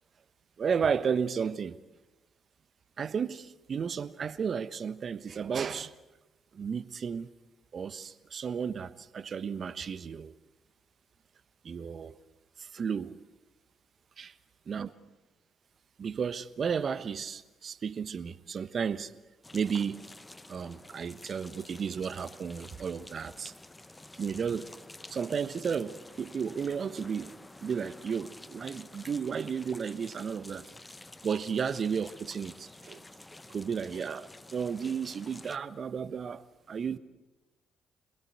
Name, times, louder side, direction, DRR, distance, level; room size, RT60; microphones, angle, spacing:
voice 1, 0.6-1.8 3.0-5.9 6.5-7.3 7.7-10.3 11.6-12.2 12.6-13.2 14.2-14.3 14.7-14.9 16.0-19.1 19.5-20.1 20.5-23.5 24.1-24.7 25.1-30.7 31.2-33.0 33.5-37.0, right 6 dB, 50° right, 1.2 m, -33 dB
sound 1, 19.4-35.6, left 2 dB, 15° left, 1.0 m, -50 dB
27.0 x 21.5 x 8.2 m
hypercardioid pair, 50°, 0 cm